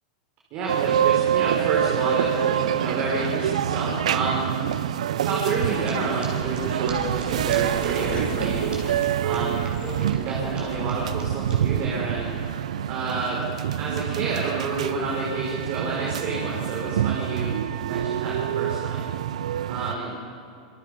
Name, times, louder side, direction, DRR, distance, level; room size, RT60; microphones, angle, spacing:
voice 1, 0.5-4.5 5.1-8.7 9.2-9.6 10.1-12.3 12.9-13.4 13.8-19.1 19.7-20.1, right 3 dB, 50° right, -3 dB, 5.8 m, -29 dB
sound 1, 0.7-19.9, right 10 dB, 75° right, 0.7 m, -26 dB
sound 2, 5.4-5.5 5.9-6.0 6.2-6.3 6.5-6.6 6.8-6.9 7.2-7.3 7.5-7.6 7.8-8.5 8.7-8.8 9.0-9.1 9.3-11.5, right 5 dB, 25° right, 6.9 m, -43 dB
sound 3, 6.9-12.5, left 4 dB, 25° left, 3.1 m, -39 dB
27.0 x 23.0 x 5.4 m, 2.4 s
hypercardioid pair, 105°, 4 cm